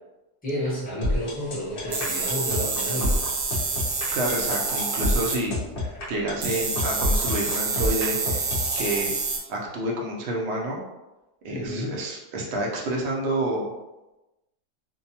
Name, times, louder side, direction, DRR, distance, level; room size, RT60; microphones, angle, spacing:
voice 1, 0.4-3.2 11.5-12.0, equal, 5° left, -8 dB, 0.8 m, -31 dB
sound 1, 1.0-9.0, left 1 dB, 55° left, 0.6 m, -28 dB
sound 2, 1.9-5.4 6.4-9.4, right 4 dB, 85° right, 1.1 m, -28 dB
voice 2, 4.1-5.6 6.1-9.1 9.5-10.8 11.4-13.7, right 1 dB, 65° right, -2 dB, 0.6 m, -29 dB
2.7 x 2.2 x 2.7 m, 1.0 s
omnidirectional pair, 1.7 m